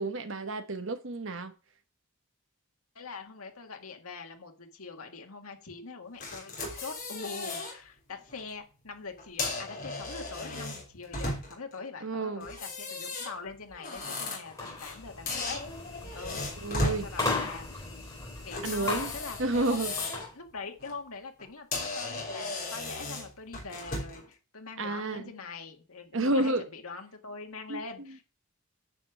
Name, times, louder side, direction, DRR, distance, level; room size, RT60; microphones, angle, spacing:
voice 1, 0.0-1.5 12.0-12.5 16.6-17.1 18.6-19.1 19.4-19.9 24.8-25.3 26.1-26.7 27.7-27.8, right 2 dB, 60° right, 1.0 m, -30 dB
voice 2, 3.0-15.6 16.1-16.5 16.8-17.8 18.4-20.0 20.3-28.2, left 4 dB, 80° left, 1.8 m, -43 dB
sound 1, 6.2-7.7 8.2-8.4 9.2-11.7 12.4-15.0 15.3-17.0 18.5-20.3 20.7-20.9 21.4-21.5 21.7-24.2, left 2 dB, 40° left, 3.4 m, -36 dB
sound 2, 14.5-20.3, left 3 dB, 15° left, 3.7 m, -37 dB
9.8 x 5.2 x 7.4 m
head